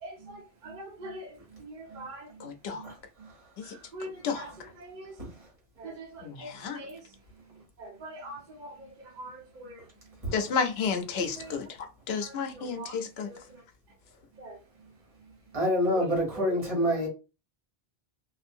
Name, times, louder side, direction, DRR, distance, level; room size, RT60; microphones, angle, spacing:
voice 1, 0.0-2.9 3.2-3.3 3.6-5.2 5.8-7.1 7.4-9.8 10.5-10.6 11.4-11.6 12.2-13.0 13.3-13.6 14.4-14.9 15.2-15.4 15.9-17.1, right 1 dB, 55° right, 0.8 m, -44 dB
voice 2, 2.4-2.9 3.6-3.7 4.2-4.5 6.2-6.8 10.3-13.3, left 5 dB, 80° left, 0.8 m, -32 dB
voice 3, 15.5-17.1, equal, 35° right, 1.4 m, -27 dB
2.5 x 2.5 x 2.5 m
omnidirectional pair, 1.0 m